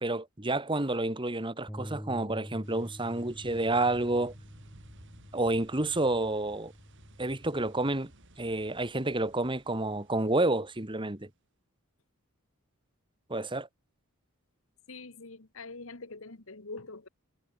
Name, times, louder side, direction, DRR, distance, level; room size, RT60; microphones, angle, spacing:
voice 1, 0.0-4.3 5.3-6.7 7.2-8.1 8.4-11.3 13.3-13.7, right 2 dB, 20° right, 1.8 m, -29 dB
Bass guitar, 1.7-7.9, equal, 10° left, 4.9 m, -47 dB
sound 1, 2.6-11.3, right 1 dB, 55° right, 5.0 m, -57 dB
voice 2, 14.9-17.1, left 3 dB, 65° left, 1.8 m, -44 dB
head